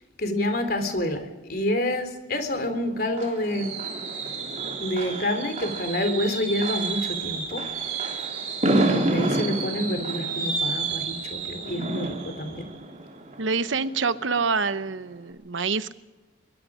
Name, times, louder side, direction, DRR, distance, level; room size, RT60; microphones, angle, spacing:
voice 1, 0.2-3.7 4.8-7.6 8.6-12.7, left 1 dB, 50° left, 7 dB, 3.6 m, -28 dB
Fireworks, 2.5-14.2 14.6-14.9 15.1-15.2, right 3 dB, 35° right, 3.3 m, -29 dB
voice 2, 13.4-15.9, right 4 dB, 85° right, 12 dB, 1.0 m, -26 dB
23.0 x 23.0 x 5.0 m, 1.1 s
head